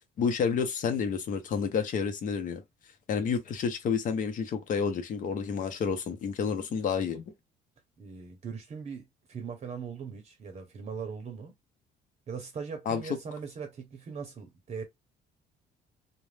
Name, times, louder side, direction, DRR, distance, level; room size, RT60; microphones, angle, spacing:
voice 1, 0.2-2.6 3.1-7.3 12.9-13.0, left 6 dB, 50° left, 0.8 m, -30 dB
voice 2, 8.0-9.0 9.3-11.5 12.3-14.8, right 6 dB, 40° right, 0.7 m, -40 dB
2.4 x 2.2 x 3.2 m
cardioid pair, 110°, 17 cm